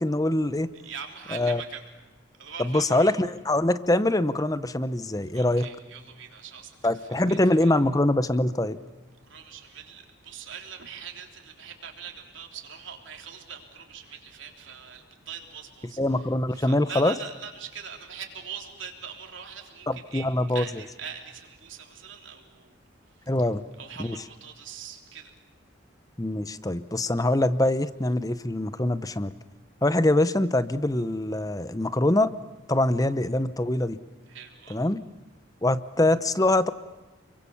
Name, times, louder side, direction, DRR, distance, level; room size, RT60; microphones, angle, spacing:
voice 1, 0.0-0.7 1.3-1.6 2.6-5.7 6.8-8.8 16.0-17.1 19.9-20.6 23.3-23.6 24.0-24.2 26.2-29.3 29.8-32.3 32.7-34.0 34.7-35.0 35.6-36.7, left 1 dB, 15° left, 14 dB, 0.8 m, -24 dB
voice 2, 0.8-1.8 2.4-3.1 5.3-7.7 9.3-16.2 16.5-22.8 23.8-25.3 34.3-34.8, right 7 dB, 65° right, 3 dB, 3.6 m, -42 dB
29.5 x 23.5 x 7.2 m, 1.2 s
head